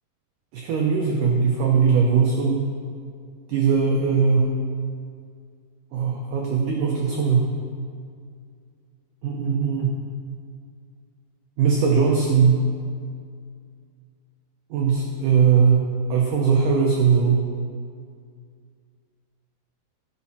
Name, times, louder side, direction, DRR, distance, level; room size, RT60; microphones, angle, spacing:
voice 1, 0.5-2.7 3.5-4.5 5.9-7.5 9.2-10.0 11.6-12.6 14.7-15.8 16.1-17.5, right 6 dB, 80° right, -1 dB, 1.9 m, -20 dB
15.0 x 7.0 x 4.3 m, 2.2 s
omnidirectional pair, 4.9 m